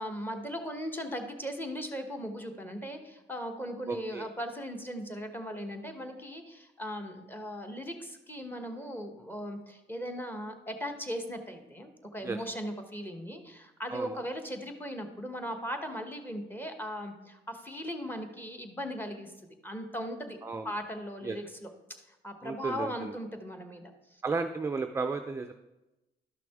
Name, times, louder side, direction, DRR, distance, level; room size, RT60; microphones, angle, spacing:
voice 1, 0.0-19.3 19.6-20.4 20.6-24.2, equal, 10° left, 5 dB, 1.1 m, -38 dB
voice 2, 3.9-4.3 12.2-12.4 13.9-14.1 20.4-20.7 21.2-21.4 22.4-23.1 24.2-25.5, right 4 dB, 15° right, 6 dB, 0.4 m, -33 dB
12.0 x 5.9 x 3.5 m, 1.0 s
cardioid pair, 90°, 20 cm